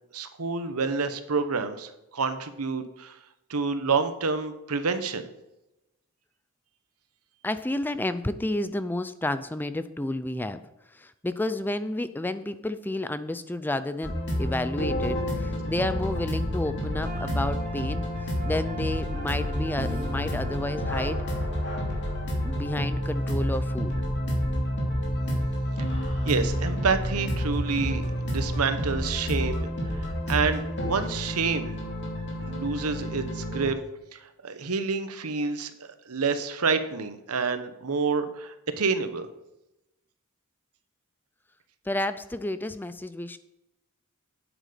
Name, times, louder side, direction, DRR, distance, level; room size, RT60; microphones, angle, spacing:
voice 1, 0.1-3.2 3.5-5.3 25.8-25.9 26.2-31.8 32.4-33.8 34.1-39.3, right 4 dB, 90° right, 9 dB, 1.0 m, -28 dB
voice 2, 7.4-10.6 10.9-21.2 22.4-24.0 41.9-43.4, left 1 dB, 10° left, 12 dB, 0.4 m, -31 dB
sound 1, 14.0-33.7, equal, 55° left, 2.8 m, -29 dB
sound 2, 17.0-22.9, right 2 dB, 40° right, 2.1 m, -43 dB
9.2 x 8.0 x 5.0 m, 0.93 s
head